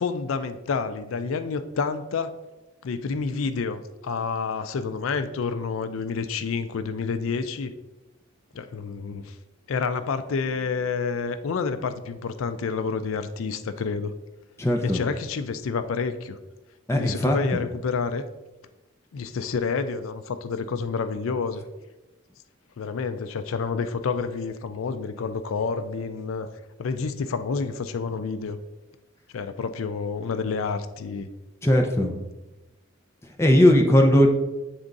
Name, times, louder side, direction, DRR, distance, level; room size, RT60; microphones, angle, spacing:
voice 1, 0.0-2.3 2.8-7.7 8.5-9.4 9.7-14.1 14.8-16.4 16.9-18.3 19.1-21.6 22.8-26.5 26.8-28.6 29.3-31.3, left 5 dB, 85° left, 11 dB, 0.4 m, -29 dB
voice 2, 14.6-15.0 16.9-17.4 31.6-32.1 33.4-34.3, left 1 dB, 15° left, 2 dB, 0.6 m, -18 dB
7.7 x 3.6 x 3.9 m, 1.0 s
head